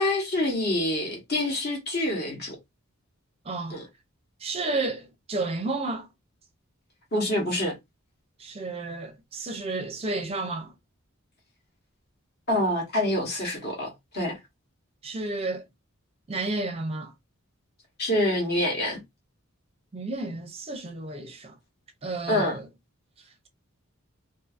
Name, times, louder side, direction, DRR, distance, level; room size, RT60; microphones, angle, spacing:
voice 1, 0.0-2.6 3.7-3.9 7.1-7.8 12.5-14.4 18.0-19.0 22.3-22.6, left 1 dB, 45° left, 1.2 m, -26 dB
voice 2, 3.5-3.8 4.4-6.1 8.4-10.7 15.0-15.6 16.3-17.1 19.9-21.5 22.0-22.6, right 2 dB, 25° right, 0.5 m, -31 dB
2.6 x 2.6 x 2.4 m
head